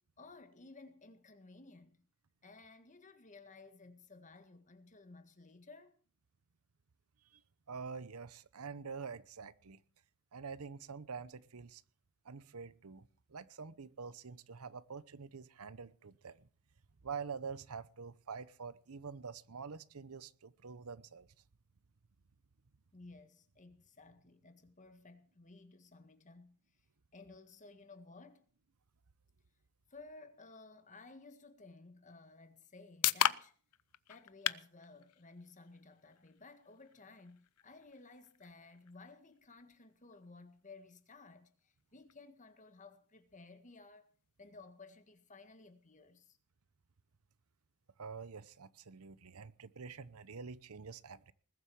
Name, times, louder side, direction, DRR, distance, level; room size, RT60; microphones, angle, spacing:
voice 1, 0.2-2.0 2.4-6.0 22.9-26.5 27.1-28.4 29.9-33.5 34.1-41.5 41.9-44.1 44.4-46.4, left 3 dB, 35° left, 1.7 m, -56 dB
voice 2, 7.7-9.8 10.3-11.8 12.2-16.4 17.0-21.3 48.0-51.3, right 5 dB, 75° right, 0.8 m, -46 dB
sound 1, 32.3-46.2, left 12 dB, 90° left, 0.6 m, -42 dB
20.0 x 8.0 x 7.0 m
head